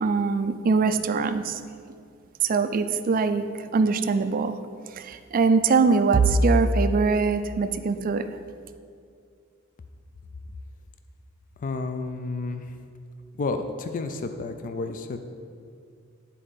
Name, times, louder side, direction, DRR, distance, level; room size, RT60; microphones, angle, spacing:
voice 1, 0.0-1.6 2.4-4.6 4.9-8.4, right 4 dB, 40° right, 10 dB, 0.4 m, -22 dB
voice 2, 11.6-12.8 13.4-15.2, left 3 dB, 40° left, 7 dB, 0.4 m, -31 dB
9.0 x 4.2 x 5.1 m, 2.3 s
head